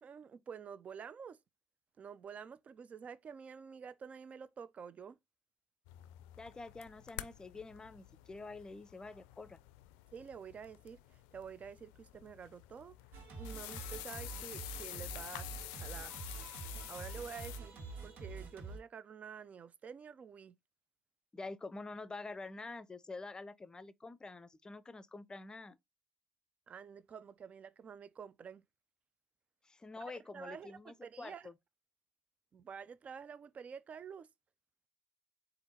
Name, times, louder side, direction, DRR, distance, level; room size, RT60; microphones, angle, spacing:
voice 1, 0.0-1.4 2.0-5.2 10.1-13.0 13.4-15.5 15.8-16.2 16.9-20.6 26.7-28.6 30.0-30.1 30.3-31.5 32.5-34.3, right 6 dB, 45° right, 0.5 m, -49 dB
sound 1, 5.9-17.6, left 16 dB, 85° left, 0.4 m, -49 dB
voice 2, 6.4-9.6 21.3-25.8 29.6-31.5, left 3 dB, 20° left, 0.5 m, -47 dB
Singing, 13.1-18.8, right 3 dB, 65° right, 1.6 m, -46 dB
4.4 x 2.6 x 4.2 m
supercardioid pair, 70°, 3 cm